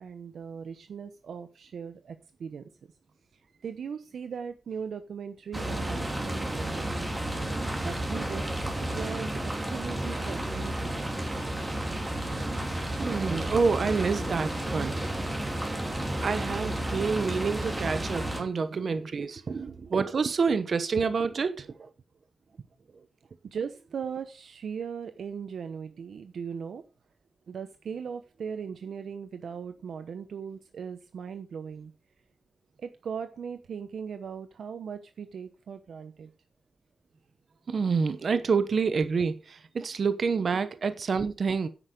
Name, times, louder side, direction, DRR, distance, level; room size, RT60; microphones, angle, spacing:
voice 1, 0.0-2.7 3.6-7.1 7.8-11.1 15.0-15.4 19.3-19.4 23.4-26.8 27.5-31.9 32.8-36.3 38.3-38.4 40.5-40.6, right 6 dB, 80° right, 0.9 m, -39 dB
sound 1, 5.5-18.4, right 1 dB, 15° right, 2.7 m, -32 dB
voice 2, 13.0-15.0 16.2-21.9 37.7-41.7, right 5 dB, 50° right, 0.9 m, -28 dB
10.0 x 8.9 x 5.1 m
wide cardioid pair, 175°, 0 cm